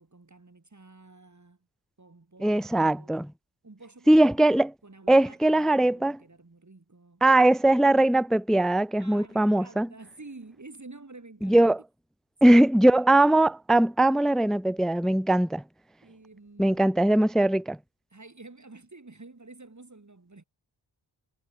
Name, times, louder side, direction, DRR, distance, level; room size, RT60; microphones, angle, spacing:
voice 1, 0.0-1.6 2.0-3.2 3.6-4.5 4.8-7.2 9.0-11.7 12.4-12.6 16.0-16.8 18.1-20.4, right 3 dB, 35° right, 6.3 m, -49 dB
voice 2, 2.4-3.3 4.1-4.7 5.1-6.2 7.2-9.9 11.4-11.8 12.4-15.6 16.6-17.8, right 1 dB, ahead, 0.6 m, -20 dB
cardioid pair, 50°, 48 cm